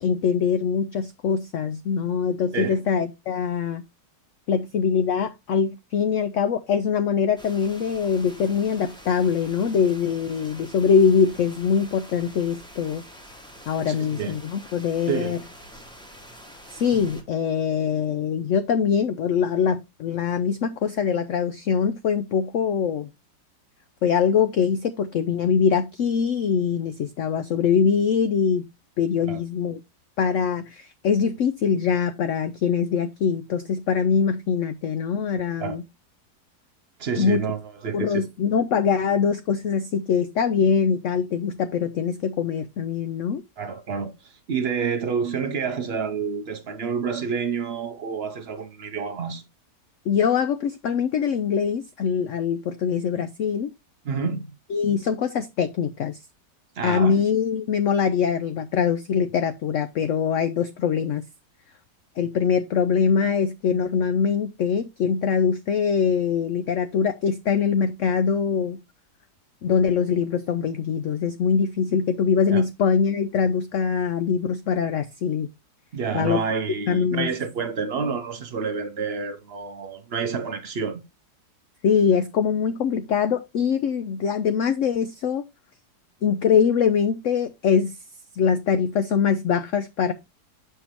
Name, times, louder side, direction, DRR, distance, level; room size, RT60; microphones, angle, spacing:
voice 1, 0.0-3.8 4.5-13.0 13.7-15.4 16.7-23.1 24.0-28.7 29.0-29.8 30.2-35.8 37.2-37.4 37.9-43.4 50.1-53.7 54.7-56.2 56.8-61.2 62.2-68.8 69.6-75.5 76.1-76.4 76.9-77.3 81.8-85.4 86.2-88.0 88.3-90.1, left 6 dB, 85° left, 0.6 m, -23 dB
sound 1, 7.4-17.2, equal, 5° left, 0.8 m, -46 dB
voice 2, 13.9-14.4 15.1-15.4 29.3-29.4 35.6-35.8 37.0-38.3 43.6-49.5 54.1-54.5 56.8-57.2 72.5-72.6 75.9-81.0, right 6 dB, 70° right, 0.6 m, -28 dB
6.7 x 5.5 x 2.9 m
omnidirectional pair, 1.9 m